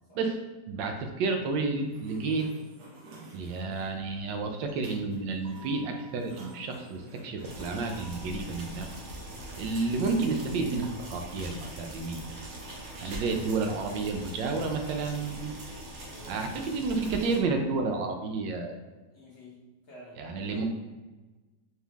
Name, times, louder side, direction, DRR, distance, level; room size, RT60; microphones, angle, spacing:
voice 1, 0.7-2.5 3.3-8.9 9.6-12.2 13.0-15.6 16.3-18.8 20.2-20.6, right 3 dB, 85° right, 4 dB, 1.3 m, -31 dB
Sliding door, 1.8-8.3, right 2 dB, 70° right, 1.3 m, -51 dB
sound 1, 7.4-17.4, right 1 dB, 50° right, 0.9 m, -42 dB
voice 2, 12.7-13.0 16.1-16.8 19.1-20.6, left 1 dB, 55° left, -5 dB, 0.8 m, -50 dB
4.4 x 2.4 x 3.4 m, 1.2 s
omnidirectional pair, 1.9 m